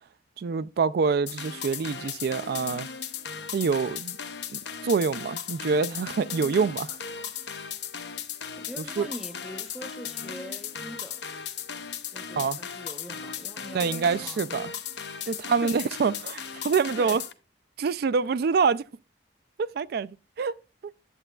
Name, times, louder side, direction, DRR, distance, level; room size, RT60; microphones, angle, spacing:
voice 1, 0.4-2.9 3.5-4.2 4.5-7.0 9.0-9.1 12.4-12.6 13.7-14.7 15.3-17.2 17.8-18.8 19.6-20.5, right 5 dB, 55° right, 0.3 m, -26 dB
sound 1, 1.3-17.3, left 7 dB, 65° left, 0.7 m, -37 dB
voice 2, 8.6-11.2 12.1-14.7 15.2-15.3 15.6-16.0 16.3-17.2, equal, 5° right, 0.7 m, -43 dB
10.0 x 7.7 x 2.3 m
head